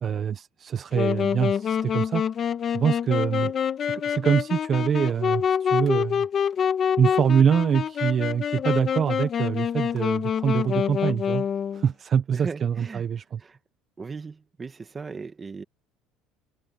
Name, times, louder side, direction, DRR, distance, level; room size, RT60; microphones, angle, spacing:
voice 1, 0.0-2.2 2.7-3.5 4.0-6.3 7.0-11.5 11.7-13.4, right 7 dB, 40° right, 1.2 m, -24 dB
Wind instrument woodwind instrument, 0.9-11.9, left 8 dB, 40° left, 2.1 m, -26 dB
voice 2, 12.3-13.0 13.4-13.6 14.0-15.6, right 4 dB, 25° right, 2.1 m, -37 dB
supercardioid pair, 110°, 0 cm